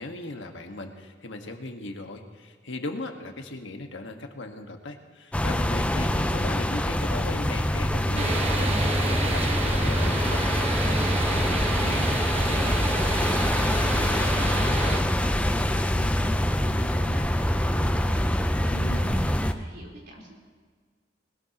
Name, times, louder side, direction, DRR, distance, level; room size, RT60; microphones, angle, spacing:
voice 1, 0.0-10.5, left 2 dB, 85° left, 4 dB, 1.6 m, -37 dB
sound 1, 5.3-19.5, left 1 dB, 5° left, 0.6 m, -25 dB
sound 2, 8.2-15.0, right 2 dB, 35° right, 1.2 m, -30 dB
voice 2, 10.8-20.4, equal, 60° right, -2 dB, 4.0 m, -41 dB
20.5 x 19.5 x 3.0 m, 1.5 s
head